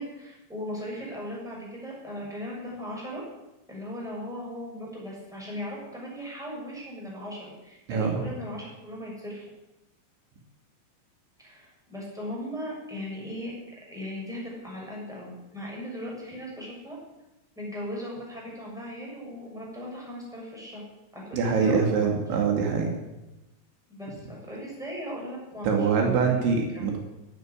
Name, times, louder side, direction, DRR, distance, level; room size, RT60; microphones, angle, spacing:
voice 1, 0.0-3.2 3.7-9.4 11.4-17.0 17.6-20.8 21.1-22.1 23.9-26.3 26.7-26.8, equal, ahead, -4 dB, 6.3 m, -38 dB
voice 2, 7.9-8.2 21.3-22.9 25.6-27.0, right 5 dB, 75° right, 2 dB, 4.4 m, -24 dB
12.0 x 10.5 x 9.9 m, 0.97 s
omnidirectional pair, 5.3 m